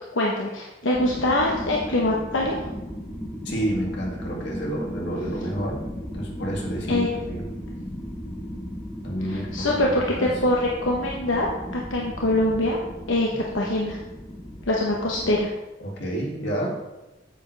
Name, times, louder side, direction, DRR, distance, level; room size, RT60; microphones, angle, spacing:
voice 1, 0.1-2.5 6.9-7.1 9.3-11.5 11.7-12.8 13.1-14.0 14.7-15.5, left 1 dB, 85° left, -2 dB, 1.0 m, -23 dB
sound 1, 0.9-15.4, equal, 10° left, 1.1 m, -36 dB
voice 2, 3.4-5.8 6.1-7.5 9.0-10.3 15.8-16.8, right 1 dB, 65° left, -2 dB, 2.3 m, -29 dB
9.1 x 7.4 x 3.3 m, 1.0 s
head